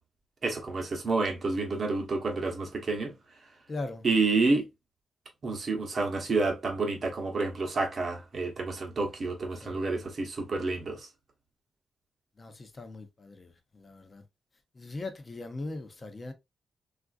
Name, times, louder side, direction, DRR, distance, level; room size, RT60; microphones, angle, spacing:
voice 1, 0.4-3.2 4.0-4.6 5.4-11.1, right 3 dB, 40° right, 0.9 m, -29 dB
voice 2, 3.7-4.0 9.6-9.7 12.4-13.5 13.8-14.2 14.8-16.3, left 2 dB, 25° left, 0.6 m, -39 dB
3.6 x 2.4 x 2.4 m
wide cardioid pair, 175°, 0 cm